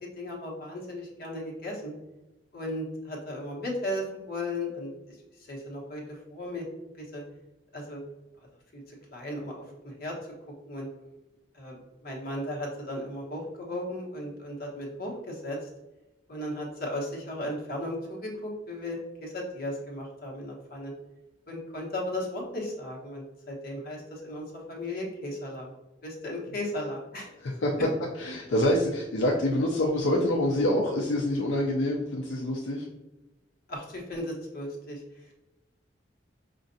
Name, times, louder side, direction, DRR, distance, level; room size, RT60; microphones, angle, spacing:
voice 1, 0.0-1.9 2.5-4.9 5.4-6.6 7.0-7.2 7.7-8.0 8.7-9.5 9.8-10.1 10.7-10.9 11.5-15.6 16.3-20.9 21.5-25.7 26.0-27.3 33.7-35.0, left 1 dB, 55° left, -2 dB, 1.1 m, -36 dB
voice 2, 27.4-27.7 28.2-32.9, left 1 dB, 80° left, -2 dB, 0.5 m, -26 dB
5.2 x 2.4 x 2.6 m, 1.0 s
head